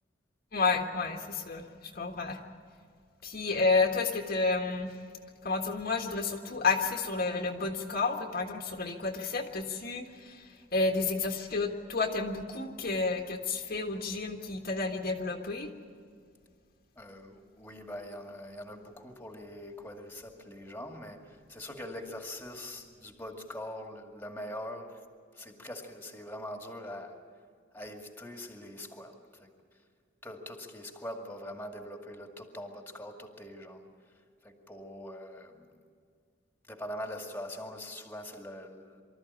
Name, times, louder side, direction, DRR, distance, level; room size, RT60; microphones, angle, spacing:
voice 1, 0.5-2.4 3.2-5.0 5.4-15.7, left 3 dB, 55° left, 2 dB, 1.6 m, -31 dB
voice 2, 17.0-25.0 25.3-27.2 27.7-29.5 30.2-33.9 34.4-35.8 36.7-39.0, left 1 dB, 10° left, 3 dB, 2.2 m, -43 dB
25.0 x 13.5 x 10.0 m, 2.1 s
head